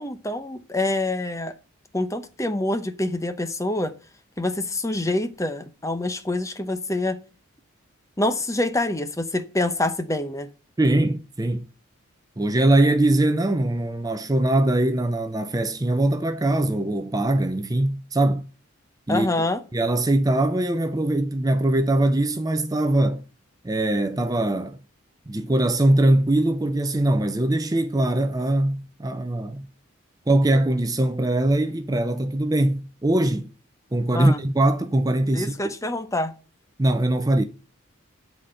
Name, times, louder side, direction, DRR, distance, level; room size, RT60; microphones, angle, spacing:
voice 1, 0.0-1.5 1.9-3.9 4.4-7.2 8.2-10.5 19.1-19.6 34.1-34.4 35.3-36.3, left 2 dB, 15° left, 0.7 m, -26 dB
voice 2, 10.8-11.7 12.4-18.5 19.1-19.3 19.7-23.2 23.6-24.8 25.3-29.7 30.3-33.5 33.9-35.7 36.8-37.4, right 1 dB, 15° right, 0.5 m, -22 dB
11.0 x 4.2 x 7.7 m
head